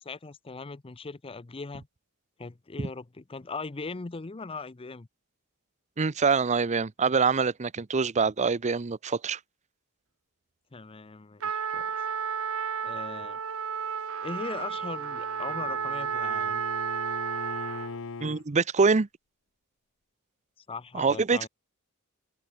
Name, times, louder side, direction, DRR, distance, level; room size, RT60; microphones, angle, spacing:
voice 1, 0.0-1.9 2.4-5.1 10.7-11.9 12.8-13.4 14.2-16.6 20.7-21.5, left 4 dB, 25° left, 0.6 m, -39 dB
voice 2, 6.0-9.4 18.2-19.1 20.9-21.5, right 5 dB, 30° right, 0.6 m, -25 dB
Trumpet, 11.4-18.0, right 7 dB, 65° right, 1.1 m, -32 dB
Bowed string instrument, 14.6-18.4, left 4 dB, 65° left, 0.8 m, -42 dB
head